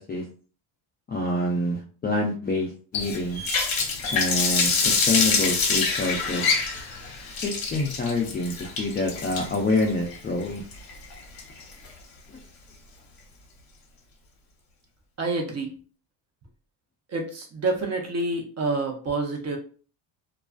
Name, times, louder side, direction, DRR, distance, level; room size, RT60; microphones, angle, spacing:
voice 1, 1.1-3.4 4.1-6.4 7.4-10.6, left 2 dB, 25° left, -3 dB, 0.3 m, -27 dB
Water tap faucet, 2.9-11.9, left 4 dB, 45° left, 1.0 m, -26 dB
voice 2, 15.2-15.7 17.1-19.6, right 3 dB, 30° right, 2 dB, 0.7 m, -28 dB
2.3 x 2.3 x 2.3 m, 0.39 s
cardioid pair, 110°, 50 cm